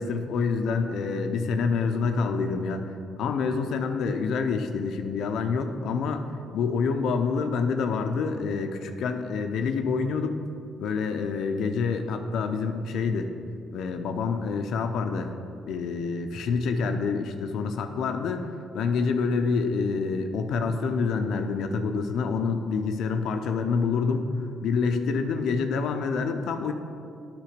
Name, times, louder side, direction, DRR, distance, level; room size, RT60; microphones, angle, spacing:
voice 1, 0.0-2.9 3.2-6.2 6.5-10.4 10.8-13.3 13.7-15.4 15.7-18.5 18.7-24.2 24.6-26.7, left 5 dB, 70° left, 6 dB, 0.6 m, -27 dB
9.3 x 5.1 x 5.1 m, 2.5 s
supercardioid pair, 65°, 0 cm